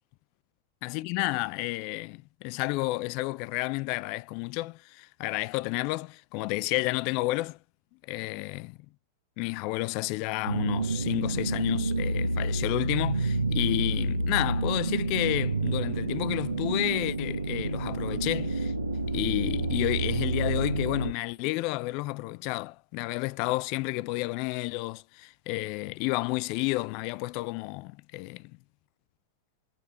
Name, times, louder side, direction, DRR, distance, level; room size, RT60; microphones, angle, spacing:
voice 1, 0.8-7.6 8.1-8.8 9.4-18.7 19.1-28.5, left 22 dB, 50° left, 0.3 m, -31 dB
sound 1, 10.5-21.1, right 2 dB, 85° right, 0.7 m, -29 dB
7.4 x 4.5 x 3.2 m
figure-of-eight pair, 95°, 0 cm